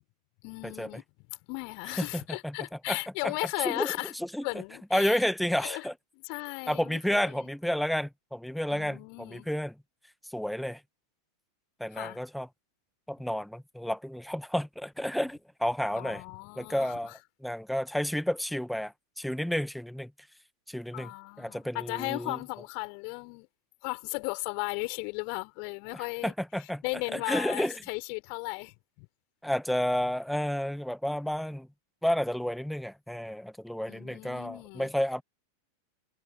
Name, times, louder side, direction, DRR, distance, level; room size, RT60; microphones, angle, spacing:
voice 1, 0.4-1.0 1.5-4.1 4.4-5.2 5.6-5.8 6.2-7.5 8.7-9.5 11.9-12.2 15.9-17.1 20.9-23.5 23.8-26.3 26.8-29.1 33.9-34.9, left 40 dB or more, 45° left, 4.5 m, -36 dB
voice 2, 2.0-2.6 2.9-3.0 3.2-3.3 3.6-4.5 4.9-5.9 6.7-9.7 10.3-10.8 11.8-12.5 13.1-16.2 16.6-17.1 17.4-20.1 20.7-22.4 25.9-26.8 27.1-27.8 29.4-31.7 32.0-35.2, equal, ahead, 1.8 m, -31 dB
figure-of-eight pair, 90°, 0 cm